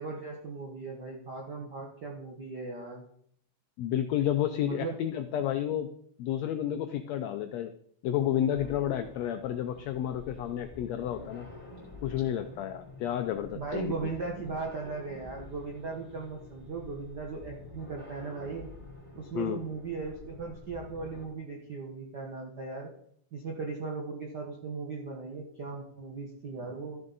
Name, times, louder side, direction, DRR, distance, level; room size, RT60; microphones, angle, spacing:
voice 1, 0.0-3.0 4.6-5.0 13.5-18.7 19.1-22.9 23.3-27.0, right 4 dB, 65° right, 0 dB, 1.0 m, -38 dB
voice 2, 3.8-5.9 6.2-7.7 8.0-11.5 12.0-14.1 19.3-19.7, left 10 dB, 80° left, 8 dB, 1.5 m, -31 dB
sound 1, 8.5-21.3, left 2 dB, 10° left, 2.7 m, -48 dB
13.0 x 7.3 x 4.0 m, 0.64 s
omnidirectional pair, 3.6 m